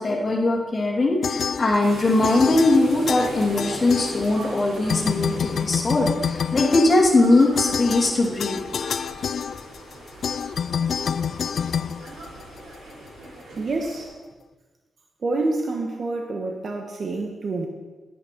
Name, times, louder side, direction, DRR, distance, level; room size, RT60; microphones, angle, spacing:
voice 1, 0.0-8.7, left 2 dB, 35° left, -2 dB, 2.6 m, -20 dB
sound 1, 1.2-2.0 2.2-4.6 4.9-12.8, left 7 dB, 65° left, 0.3 m, -28 dB
sound 2, 1.8-14.0, right 1 dB, 80° right, 3.4 m, -40 dB
voice 2, 13.6-14.1 15.2-17.7, right 2 dB, 55° right, 2 dB, 1.3 m, -27 dB
10.0 x 9.2 x 5.3 m, 1.3 s
cardioid pair, 95°, 0 cm